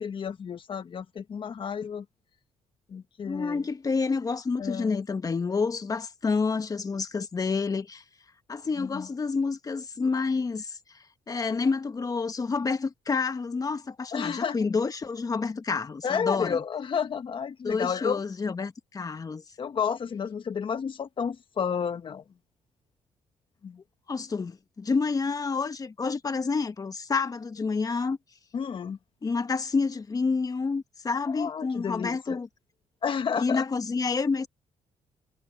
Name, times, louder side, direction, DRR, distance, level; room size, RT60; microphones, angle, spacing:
voice 1, 0.0-2.0 2.9-3.6 4.6-5.0 8.8-9.1 14.1-14.6 16.0-18.2 19.6-22.2 23.6-23.8 28.5-29.0 31.3-32.4 33.0-33.6, left 7 dB, 50° left, 1.6 m, -31 dB
voice 2, 3.2-8.0 8.5-10.8 11.3-16.6 17.6-19.4 24.1-28.2 29.2-32.5 33.4-34.5, left 4 dB, 30° left, 1.5 m, -28 dB
cardioid pair, 90°, 11 cm